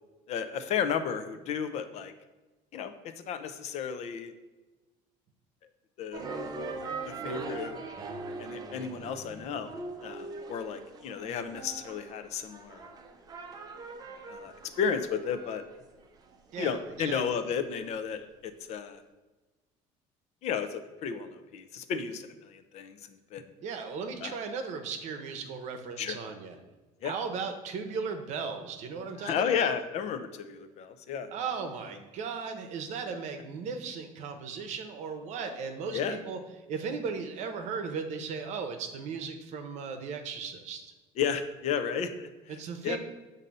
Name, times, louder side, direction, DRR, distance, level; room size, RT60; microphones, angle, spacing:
voice 1, 0.3-2.1 2.7-4.3 6.0-6.2 7.1-7.8 8.4-9.7 10.0-12.9 14.3-15.6 16.6-19.0 20.4-23.0 23.3-23.5 24.2-24.4 26.0-26.2 27.0-27.1 29.2-31.3 35.9-36.2 41.2-42.5 42.8-43.0, left 7 dB, 50° left, 10 dB, 0.5 m, -33 dB
sound 1, 6.1-17.3, right 3 dB, 25° right, 0.5 m, -41 dB
voice 2, 16.5-17.2 23.6-26.6 27.0-29.7 31.3-36.4 36.7-40.9 42.5-43.0, right 5 dB, 55° right, 7 dB, 0.8 m, -36 dB
7.3 x 2.7 x 5.3 m, 1.2 s
cardioid pair, 150°, 14 cm